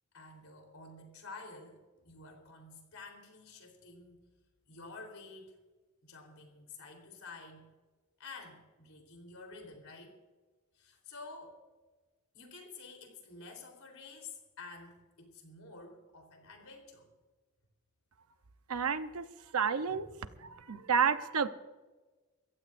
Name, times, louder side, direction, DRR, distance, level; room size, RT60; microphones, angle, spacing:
voice 1, 0.1-4.2 4.7-5.6 6.0-7.7 8.2-10.2 10.7-11.6 12.3-17.1 19.9-20.7, left 3 dB, 75° left, 3 dB, 3.8 m, -50 dB
voice 2, 18.7-19.3 19.5-20.1 20.4-21.5, right 6 dB, 80° right, 10 dB, 0.8 m, -30 dB
25.0 x 15.0 x 2.6 m, 1.3 s
head